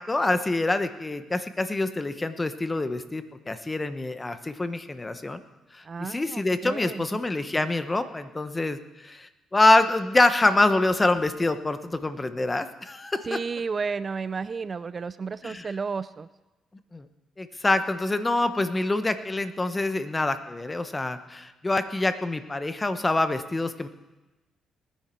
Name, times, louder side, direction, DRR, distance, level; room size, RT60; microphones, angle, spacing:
voice 1, 0.1-5.4 5.7-13.4 15.4-15.7 16.9-17.1 17.4-23.9, left 2 dB, 20° left, 10 dB, 1.0 m, -25 dB
voice 2, 5.8-7.2 13.3-16.3, right 5 dB, 35° right, 15 dB, 0.4 m, -32 dB
19.5 x 10.0 x 4.5 m, 1.1 s
cardioid pair, 90°, 0 cm